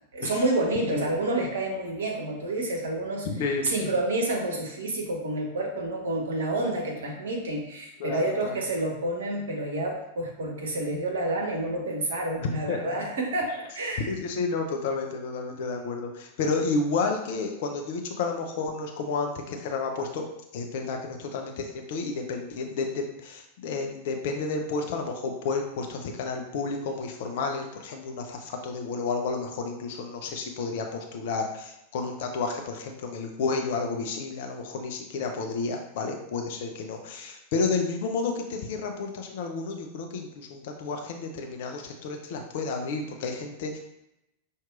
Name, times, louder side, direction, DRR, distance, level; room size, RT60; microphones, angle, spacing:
voice 1, 0.1-14.1, right 2 dB, 65° right, 0 dB, 1.0 m, -29 dB
voice 2, 3.2-3.6 8.0-8.6 12.4-12.8 14.1-20.3 20.5-43.8, left 4 dB, 50° left, 4 dB, 0.6 m, -31 dB
5.9 x 2.7 x 2.4 m, 0.87 s
figure-of-eight pair, 90°, 0 cm